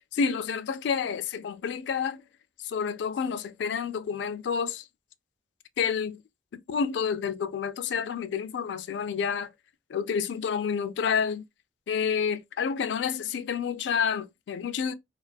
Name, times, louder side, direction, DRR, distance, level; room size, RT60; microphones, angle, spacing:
voice 1, 0.1-2.2 2.6-4.9 5.8-6.2 6.5-9.5 9.9-11.4 11.9-14.9, left 6 dB, 85° left, 0.3 m, -29 dB
2.5 x 2.3 x 2.2 m
head